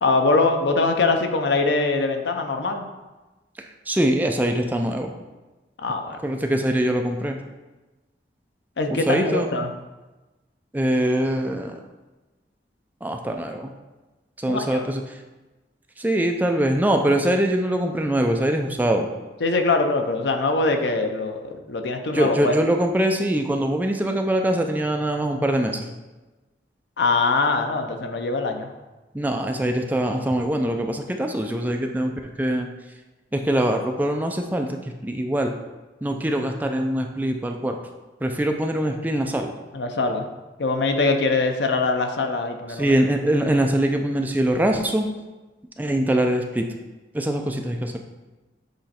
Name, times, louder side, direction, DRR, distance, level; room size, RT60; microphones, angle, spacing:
voice 1, 0.0-2.8 5.8-6.2 8.8-9.7 14.5-14.8 19.4-22.5 27.0-28.7 39.7-40.3 40.6-42.9, left 3 dB, 75° left, 5 dB, 0.6 m, -22 dB
voice 2, 3.9-5.1 6.2-7.4 8.9-9.5 10.7-11.8 13.0-13.7 14.4-15.2 16.0-19.1 22.1-25.9 29.1-32.1 32.4-32.7 33.3-34.8 35.0-35.5 36.0-37.8 38.2-39.5 42.7-45.1 45.8-46.6 47.1-48.0, right 1 dB, 10° right, 3 dB, 0.4 m, -23 dB
7.7 x 3.0 x 4.3 m, 1.1 s
head